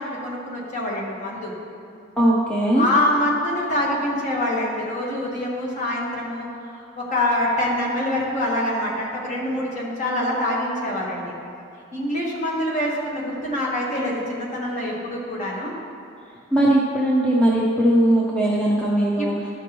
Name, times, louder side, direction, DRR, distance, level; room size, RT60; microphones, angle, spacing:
voice 1, 0.0-1.5 2.8-11.3 11.9-15.7 19.2-19.3, left 1 dB, 40° left, -4 dB, 1.5 m, -25 dB
voice 2, 2.2-2.9 16.5-19.3, right 1 dB, 5° left, -4 dB, 0.6 m, -19 dB
12.0 x 5.8 x 3.0 m, 2.5 s
head